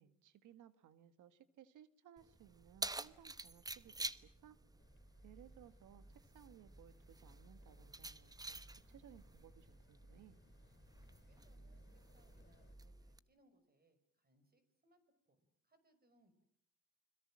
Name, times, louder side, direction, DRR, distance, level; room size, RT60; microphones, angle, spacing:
voice 1, 0.0-4.6 5.2-10.4, right 10 dB, 80° right, 13 dB, 1.7 m, -62 dB
Keys jangling, 2.2-13.2, right 2 dB, 10° right, 1.0 m, -50 dB
sound 1, 4.8-12.8, left 4 dB, 35° left, 6.1 m, -70 dB
voice 2, 11.3-15.0 15.3-16.4, right 1 dB, 30° right, 11 dB, 5.7 m, -75 dB
30.0 x 22.0 x 7.5 m, 0.68 s
cardioid pair, 90°, 30 cm